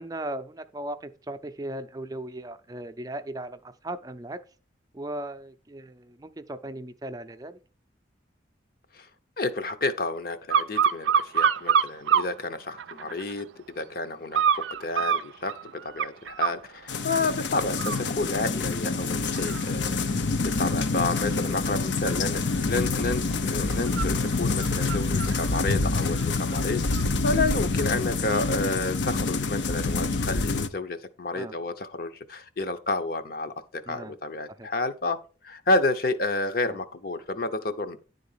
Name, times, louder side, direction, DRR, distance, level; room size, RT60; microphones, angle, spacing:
voice 1, 0.0-4.4 4.9-7.6 31.3-31.5 33.9-34.2 34.5-34.7 36.7-36.8, right 1 dB, 20° right, 0.5 m, -37 dB
voice 2, 9.4-13.5 13.8-35.2 35.4-38.0, left 2 dB, 55° left, 0.7 m, -30 dB
sound 1, 10.5-12.3 12.8-13.4 14.3-16.6 17.1-17.4 17.7-27.0 27.4-27.6, right 7 dB, 85° right, 0.4 m, -29 dB
sound 2, 16.9-30.7, left 3 dB, 90° left, 0.7 m, -27 dB
10.5 x 3.9 x 5.6 m
head